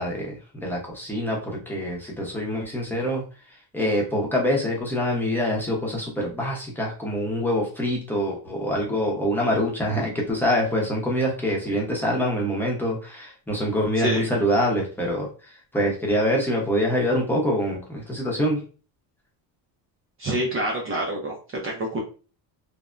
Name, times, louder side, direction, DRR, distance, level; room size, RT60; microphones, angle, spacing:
voice 1, 0.0-3.2 3.7-15.3 15.7-18.6, equal, 5° left, -3 dB, 0.7 m, -25 dB
voice 2, 20.2-21.4 21.6-22.0, right 1 dB, 30° right, -1 dB, 0.5 m, -26 dB
3.4 x 2.0 x 2.5 m, 0.37 s
cardioid pair, 140°, 42 cm